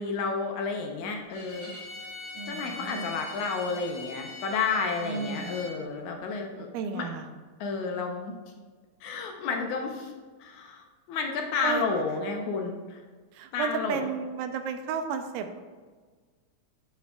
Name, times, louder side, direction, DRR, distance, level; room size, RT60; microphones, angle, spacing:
voice 1, 0.0-1.7 2.5-7.1 7.6-8.3 9.0-10.1 10.4-13.0 13.5-14.1, left 4 dB, 75° left, 2 dB, 2.0 m, -31 dB
Bowed string instrument, 1.3-5.8, left 2 dB, 50° left, 1.6 m, -42 dB
voice 2, 2.4-3.1 5.0-5.5 6.6-7.3 11.6-11.8 13.3-15.6, right 6 dB, 85° right, 8 dB, 2.2 m, -33 dB
9.4 x 6.6 x 2.3 m, 1.4 s
omnidirectional pair, 3.8 m